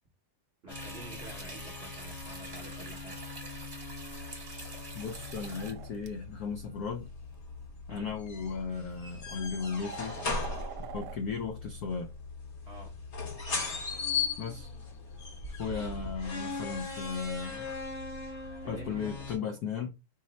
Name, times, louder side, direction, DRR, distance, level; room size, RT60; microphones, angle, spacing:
voice 1, 0.6-3.2 7.9-8.1 12.7-13.0 18.6-19.3 19.7-19.8, right 2 dB, 50° right, 0.7 m, -49 dB
sound 1, 0.7-19.4, left 4 dB, 45° left, 1.0 m, -39 dB
sound 2, 0.7-5.7, right 2 dB, 20° right, 0.7 m, -46 dB
voice 2, 4.9-7.1 7.9-10.2 10.8-12.1 14.4-14.7 15.6-17.7 18.7-19.9, left 5 dB, 85° left, 0.8 m, -36 dB
sound 3, 5.0-6.1 7.2-7.4 8.3-8.4 8.9-11.2, right 10 dB, 75° right, 1.0 m, -46 dB
4.8 x 2.1 x 4.0 m
omnidirectional pair, 2.2 m